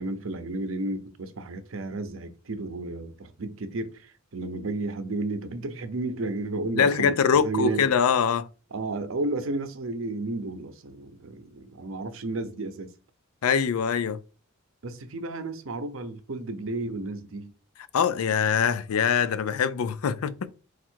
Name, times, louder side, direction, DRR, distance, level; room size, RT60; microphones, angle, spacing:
voice 1, 0.0-7.9 8.7-12.9 14.8-17.5, right 2 dB, 65° right, 0.6 m, -32 dB
voice 2, 6.8-8.5 13.4-14.2 17.9-20.5, left 7 dB, 80° left, 0.4 m, -23 dB
4.3 x 2.4 x 4.4 m
head